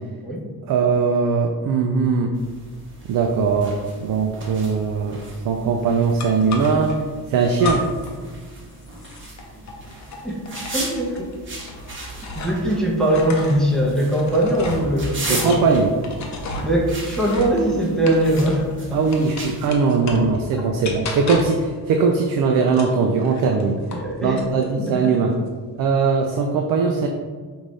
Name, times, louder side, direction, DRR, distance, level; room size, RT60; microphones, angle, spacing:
voice 1, 0.7-2.3 3.0-5.2 5.4-7.0 7.3-7.9 15.3-15.9 18.9-23.8 24.2-25.4 25.8-27.1, right 5 dB, 55° right, 3 dB, 0.5 m, -20 dB
sound 1, 2.3-19.7, right 2 dB, 30° right, 1.0 m, -37 dB
sound 2, 6.2-7.0 7.6-8.2 8.4-12.7 13.0-18.7 19.1-20.4 20.8-21.7 22.7-24.1 24.4-25.0, left 2 dB, 45° left, 0.7 m, -33 dB
voice 2, 10.7-11.3 12.3-15.6 16.6-19.0 20.6-20.7 23.9-24.4 24.7-25.2, right 1 dB, ahead, -3 dB, 0.7 m, -21 dB
5.1 x 2.6 x 3.1 m, 1.5 s
cardioid pair, 130°, 40 cm